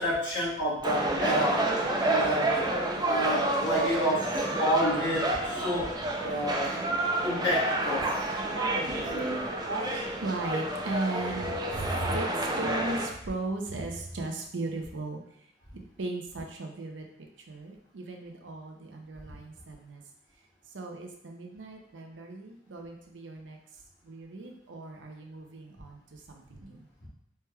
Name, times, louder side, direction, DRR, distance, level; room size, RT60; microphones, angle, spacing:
voice 1, 0.0-1.7 2.0-2.6 3.0-5.9 6.2-6.8 7.2-8.3 9.1-9.2, equal, 75° left, -6 dB, 1.3 m, -29 dB
sound 1, 0.8-13.1, right 1 dB, 20° right, 0.5 m, -29 dB
voice 2, 8.5-15.2 15.7-17.1 17.5-20.0 20.7-23.6 24.0-26.8, right 2 dB, 75° right, 3 dB, 0.6 m, -37 dB
4.5 x 3.1 x 2.3 m, 0.72 s
head